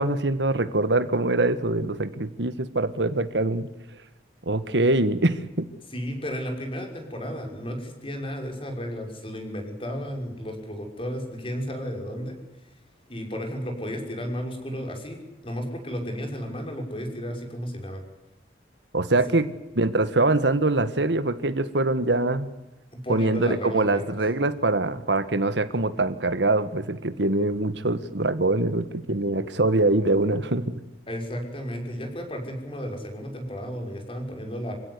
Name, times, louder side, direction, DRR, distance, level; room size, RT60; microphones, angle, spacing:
voice 1, 0.0-3.7 4.5-5.7 18.9-19.5 19.8-22.5 23.1-30.8, right 2 dB, 80° right, 12 dB, 1.7 m, -23 dB
voice 2, 5.9-12.4 13.1-18.0 19.1-19.4 22.9-24.1 31.1-34.7, equal, 30° left, 3 dB, 5.8 m, -33 dB
28.0 x 16.5 x 9.8 m, 1.0 s
head